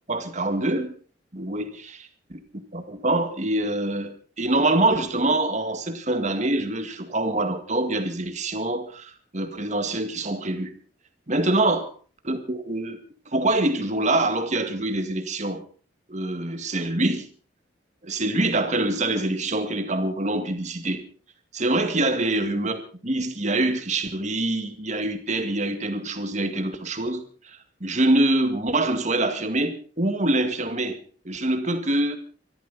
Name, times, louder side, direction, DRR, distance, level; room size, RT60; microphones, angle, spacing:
voice 1, 0.1-0.9 1.3-2.4 2.7-10.7 11.3-11.8 12.2-13.0 13.3-15.6 16.1-17.3 18.0-21.0 21.5-31.0 31.3-32.2, right 2 dB, 40° right, 2.1 m, -25 dB
24.5 x 13.0 x 4.2 m
head